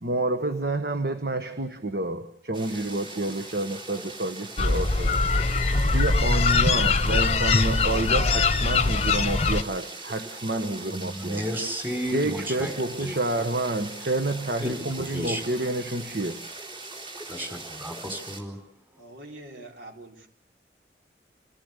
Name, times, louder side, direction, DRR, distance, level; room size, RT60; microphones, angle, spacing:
voice 1, 0.0-5.2 5.9-11.5 12.1-16.5, right 2 dB, 60° right, 8 dB, 1.4 m, -29 dB
sound 1, 2.5-18.4, right 2 dB, 30° right, 3.9 m, -41 dB
sound 2, 4.6-9.6, left 3 dB, 35° left, 0.8 m, -22 dB
voice 2, 10.9-12.7 13.0-13.1 14.6-15.4 17.3-18.6, equal, 10° right, 5 dB, 4.0 m, -32 dB
voice 3, 19.0-20.3, right 2 dB, 85° right, 1 dB, 4.7 m, -44 dB
27.5 x 17.5 x 8.2 m, 0.72 s
head